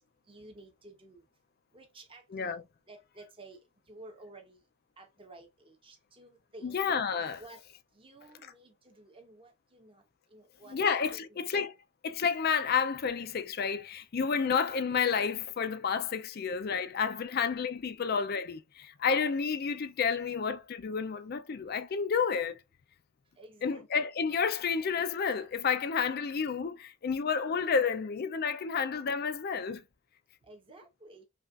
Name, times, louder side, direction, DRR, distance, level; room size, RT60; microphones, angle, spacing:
voice 1, 0.3-1.2 1.7-2.5 2.9-3.6 3.9-4.6 5.0-6.8 7.4-7.6 7.9-10.0 10.3-11.5 23.4-24.1 30.4-31.3, right 2 dB, 25° right, 0.9 m, -53 dB
voice 2, 2.3-2.6 6.6-7.4 10.7-11.7 12.0-22.6 23.6-29.8, left 6 dB, 50° left, 0.4 m, -30 dB
5.5 x 2.4 x 2.4 m
head